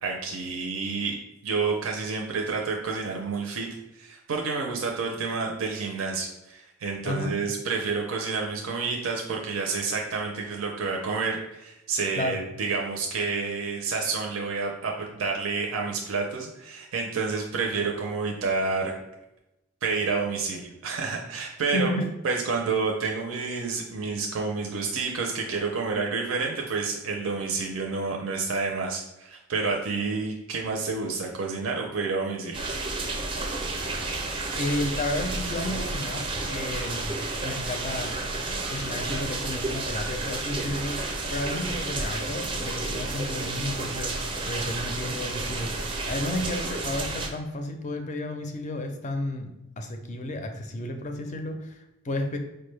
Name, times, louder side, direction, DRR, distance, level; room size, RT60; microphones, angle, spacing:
voice 1, 0.0-1.2 1.4-3.7 3.9-18.9 19.8-21.9 22.2-32.7, right 4 dB, 80° right, 0 dB, 0.5 m, -29 dB
voice 2, 21.7-22.1 34.6-37.1 37.4-38.1 38.7-52.4, left 1 dB, 35° left, 5 dB, 0.4 m, -32 dB
sound 1, 32.5-47.3, right 2 dB, 25° right, 0.4 m, -31 dB
4.6 x 2.1 x 3.1 m, 0.95 s
head